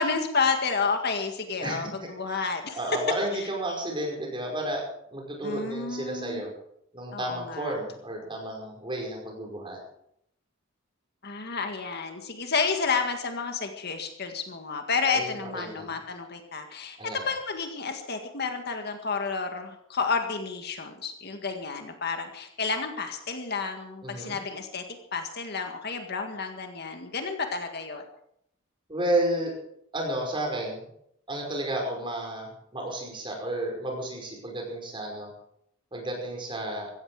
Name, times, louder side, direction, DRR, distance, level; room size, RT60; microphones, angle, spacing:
voice 1, 0.0-2.8 5.4-6.4 7.1-7.8 11.2-24.8 25.1-28.0, left 4 dB, 55° left, 5 dB, 1.9 m, -30 dB
voice 2, 2.7-4.8 5.1-6.5 6.9-9.8 15.1-16.0 17.0-17.3 24.0-24.4 28.9-29.5 29.9-30.8 31.3-35.3 35.9-36.9, right 1 dB, 25° right, 0 dB, 5.2 m, -32 dB
16.0 x 15.0 x 4.9 m, 0.72 s
head